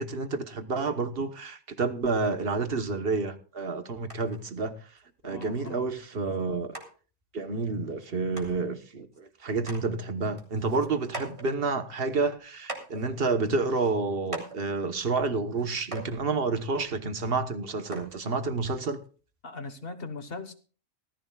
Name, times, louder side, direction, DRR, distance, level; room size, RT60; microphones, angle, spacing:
voice 1, 0.0-4.9 5.2-6.8 7.3-19.0, right 3 dB, 45° right, 10 dB, 1.3 m, -29 dB
sound 1, 4.1-4.4 5.0-5.1 5.4-5.8 6.3-6.4 6.7-6.9 8.0-8.1 8.4-8.6 9.1-9.2 9.6-9.8 10.2-11.5 12.1-12.2 12.6-13.1 13.8-13.9 14.3-14.6 15.5-15.7 15.9-16.2 17.2-17.3 17.9-18.2 19.1-19.2, right 2 dB, 25° right, 3.1 m, -40 dB
voice 2, 5.2-5.8 19.4-20.5, left 3 dB, 50° left, 10 dB, 1.4 m, -39 dB
19.0 x 14.5 x 2.3 m, 0.38 s
omnidirectional pair, 1.4 m